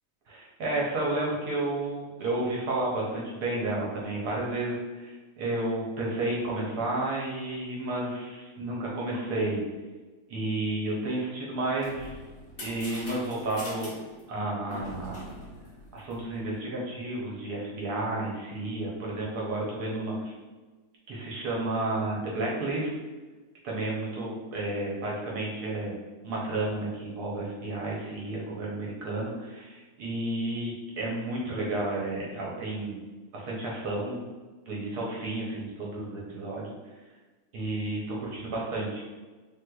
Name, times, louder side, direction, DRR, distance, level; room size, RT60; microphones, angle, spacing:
voice 1, 0.3-9.6 10.3-12.1 12.6-13.9 14.3-15.3 15.9-20.3 21.1-22.9 23.6-26.0 26.2-33.0 33.3-34.2 34.7-36.7 37.5-39.0, right 2 dB, 70° right, -4 dB, 1.0 m, -31 dB
sound 1, 11.5-16.5, left 1 dB, 80° left, 0.5 m, -43 dB
3.7 x 2.6 x 2.2 m, 1.3 s
omnidirectional pair, 2.3 m